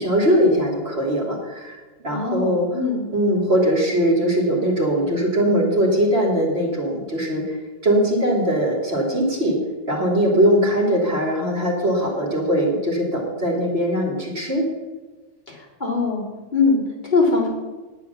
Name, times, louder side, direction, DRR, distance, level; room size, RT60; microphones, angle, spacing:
voice 1, 0.0-2.7 3.1-7.6 7.8-9.6 9.9-14.7, equal, 55° right, -1 dB, 2.9 m, -20 dB
voice 2, 2.1-3.0 15.5-16.2 16.5-17.5, left 4 dB, 40° left, -5 dB, 3.6 m, -22 dB
10.0 x 9.7 x 7.0 m, 1.3 s
omnidirectional pair, 1.3 m